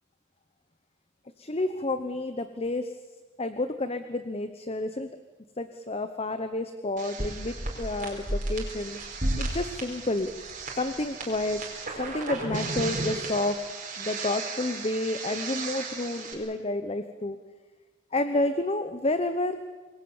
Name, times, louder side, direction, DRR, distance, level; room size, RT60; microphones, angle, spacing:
voice 1, 1.4-3.0 3.4-5.1 5.6-9.0 9.4-10.3 10.8-11.6 12.0-13.6 14.0-17.4 18.1-19.6, left 2 dB, 30° left, 10 dB, 0.9 m, -30 dB
sound 1, 7.0-16.3, right 2 dB, 40° right, 4.8 m, -34 dB
26.0 x 21.0 x 7.2 m, 1.3 s
head